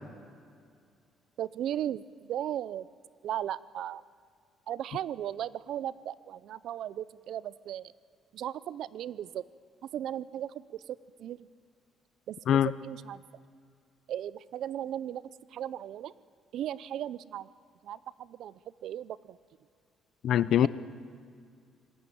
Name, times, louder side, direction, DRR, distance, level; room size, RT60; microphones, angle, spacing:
voice 1, 1.4-2.9 3.2-4.0 4.7-7.9 8.3-9.4 9.9-11.5 12.3-13.2 14.1-15.2 15.5-16.1 16.5-17.5 17.8-19.4, right 11 dB, 60° right, 18 dB, 0.6 m, -36 dB
voice 2, 20.2-20.7, left 10 dB, 55° left, 17 dB, 0.7 m, -23 dB
26.0 x 20.5 x 8.7 m, 2.2 s
cardioid pair, 150°, 0 cm